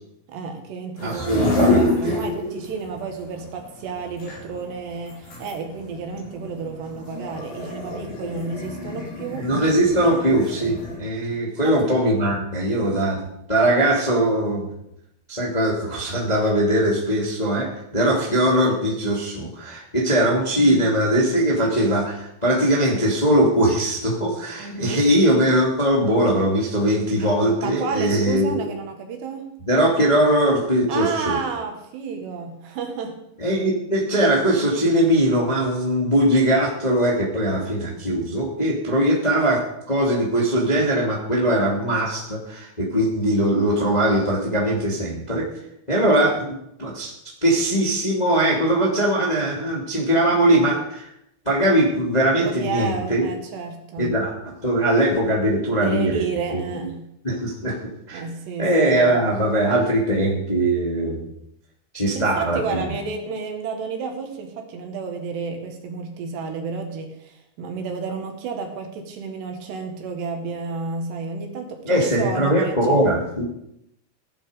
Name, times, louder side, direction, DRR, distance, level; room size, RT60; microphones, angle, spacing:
voice 1, 0.3-9.5 11.6-11.9 20.5-20.8 24.6-25.1 27.6-29.6 30.9-33.2 52.4-54.2 55.8-57.0 58.1-59.2 62.1-73.0, right 5 dB, 70° right, 4 dB, 3.8 m, -31 dB
sound 1, 1.0-11.0, left 2 dB, 85° left, 8.6 m, -28 dB
voice 2, 1.0-2.1 9.4-14.7 15.3-28.6 29.7-31.4 33.4-45.5 45.9-47.1 47.4-51.1 51.4-53.3 54.0-54.3 54.6-56.2 56.5-56.6 57.2-57.8 58.1-58.2 58.6-61.3 61.9-62.8 71.8-73.4, right 1 dB, 15° left, -2 dB, 1.9 m, -20 dB
16.0 x 11.5 x 5.2 m, 0.79 s
omnidirectional pair, 5.3 m